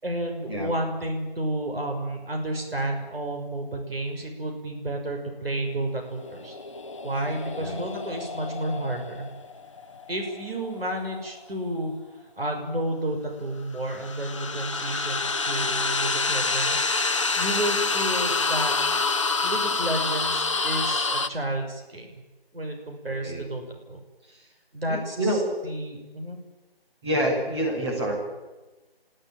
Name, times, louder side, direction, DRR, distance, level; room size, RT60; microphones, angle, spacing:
voice 1, 0.0-6.6 7.0-9.3 10.1-11.9 12.4-18.8 19.4-22.2 22.5-24.0 24.7-26.4, right 1 dB, 70° right, 2 dB, 6.0 m, -31 dB
sound 1, 6.1-11.3 13.8-21.3, left 3 dB, 30° left, 0.9 m, -27 dB
voice 2, 24.9-25.4 27.0-28.1, right 1 dB, 25° right, -2 dB, 6.5 m, -27 dB
28.5 x 16.5 x 8.9 m, 1.2 s
figure-of-eight pair, 165°, 31 cm